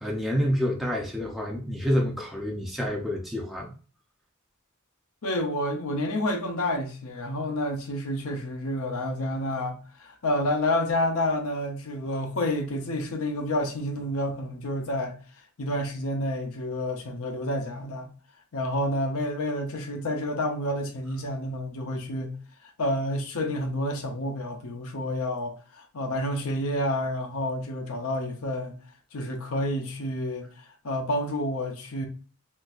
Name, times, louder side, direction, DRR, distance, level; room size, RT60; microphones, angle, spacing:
voice 1, 0.0-3.7, equal, ahead, 0.5 m, -28 dB
voice 2, 5.2-15.2 15.6-18.1 18.5-22.4 22.8-28.8 29.1-32.1, left 1 dB, 75° left, 0.6 m, -29 dB
3.7 x 2.6 x 2.4 m
head